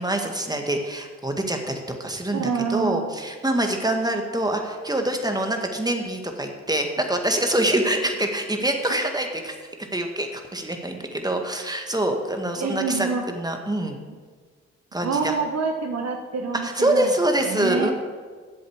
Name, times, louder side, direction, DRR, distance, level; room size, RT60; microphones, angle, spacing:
voice 1, 0.0-9.6 9.9-14.0 14.9-15.3 16.6-17.9, right 1 dB, 10° right, 4 dB, 1.8 m, -25 dB
voice 2, 2.3-3.1 12.6-13.2 14.1-14.2 15.0-17.1 17.5-17.9, right 5 dB, 55° right, 3 dB, 1.2 m, -27 dB
8.3 x 7.6 x 7.3 m, 1.5 s
hypercardioid pair, 40°, 32 cm